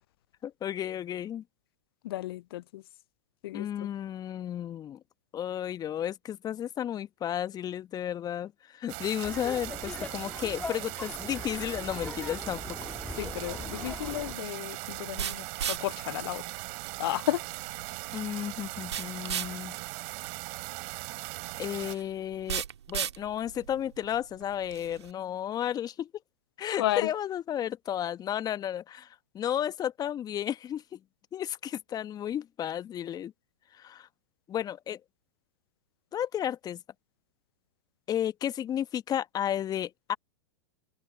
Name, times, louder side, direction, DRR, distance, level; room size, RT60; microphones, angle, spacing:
voice 1, 0.4-1.4 3.5-5.0 5.3-12.8 18.1-19.8 21.6-22.6 22.9-26.1 26.6-31.0 31.3-33.3 33.7-34.1 34.5-35.0 36.1-36.8 38.1-40.2, left 10 dB, 25° left, 1.3 m, -33 dB
voice 2, 2.0-2.8 3.4-3.9 13.2-16.4 17.0-17.4 26.8-27.1, left 16 dB, 60° left, 0.5 m, -33 dB
sound 1, 8.9-21.9, right 38 dB, 50° right, 5.0 m, -39 dB
Laughter, 9.2-14.3, left 3 dB, 10° left, 2.0 m, -41 dB
sound 2, 12.6-25.1, right 9 dB, 75° right, 1.9 m, -39 dB
figure-of-eight pair, 100°, 14 cm